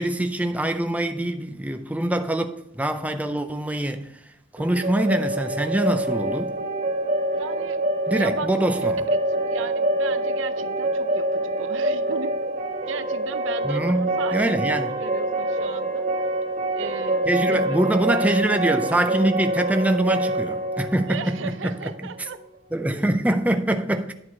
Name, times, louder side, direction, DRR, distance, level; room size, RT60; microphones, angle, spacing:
voice 1, 0.0-6.6 8.1-9.0 13.6-14.9 17.3-21.7 22.7-24.1, right 1 dB, 5° right, 0.5 m, -24 dB
sound 1, 4.6-22.3, right 1 dB, 40° right, 1.1 m, -26 dB
voice 2, 7.3-7.8 8.1-8.5 9.3-12.6 12.9-14.6 15.0-16.1 16.7-17.8 21.1-22.4, right 5 dB, 70° right, 0.6 m, -36 dB
10.5 x 4.8 x 5.4 m
head